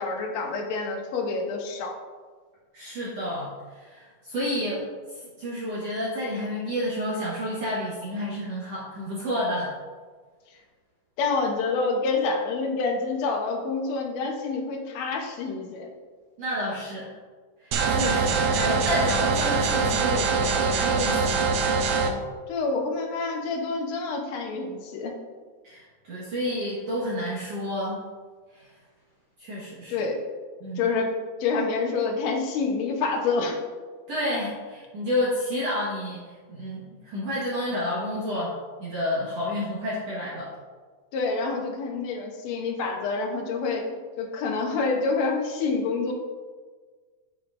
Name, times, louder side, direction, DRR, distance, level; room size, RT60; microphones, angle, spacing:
voice 1, 0.0-1.9 11.2-15.9 22.5-25.1 29.9-30.2 30.8-31.1 31.4-33.6 41.1-43.9 44.2-46.1, left 4 dB, 70° left, 2 dB, 1.7 m, -27 dB
voice 2, 2.7-9.7 16.4-17.2 17.6-21.5 25.6-28.0 28.5-28.7 29.4-30.0 30.6-30.8 34.1-36.2 36.5-40.5, left 1 dB, 55° right, -7 dB, 1.9 m, -30 dB
sound 1, 17.7-22.1, right 4 dB, 85° right, 2.4 m, -23 dB
9.3 x 7.0 x 2.5 m, 1.5 s
omnidirectional pair, 4.2 m